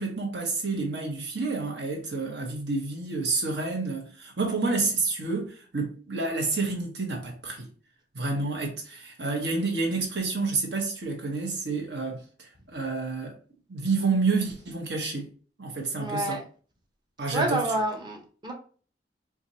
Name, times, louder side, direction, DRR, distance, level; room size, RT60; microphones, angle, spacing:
voice 1, 0.0-7.7 8.1-13.3 13.7-15.3 15.6-16.4 17.2-17.7, right 3 dB, 65° right, 1.2 m, -29 dB
voice 2, 15.9-16.4 17.3-18.5, right 1 dB, 25° right, 0.8 m, -28 dB
4.6 x 2.5 x 2.8 m
head